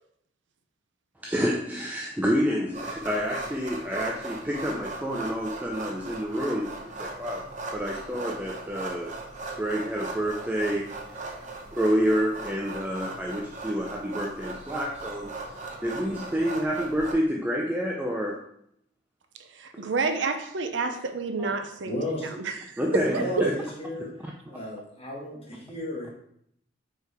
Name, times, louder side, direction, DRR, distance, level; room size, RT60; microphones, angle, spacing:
voice 1, 1.2-7.5 7.7-9.1 9.5-11.3 11.7-18.4 19.7-19.9 21.4-21.5 22.8-23.6, equal, 10° right, -1 dB, 0.5 m, -28 dB
sound 1, 2.7-17.1, right 2 dB, 40° right, 0.8 m, -38 dB
voice 2, 19.5-22.0 22.4-22.5 23.1-23.5, right 4 dB, 75° right, 6 dB, 0.7 m, -29 dB
voice 3, 21.8-22.3 22.8-24.1 24.5-26.1, left 1 dB, 30° left, -3 dB, 1.5 m, -34 dB
4.9 x 4.6 x 4.7 m, 0.72 s
head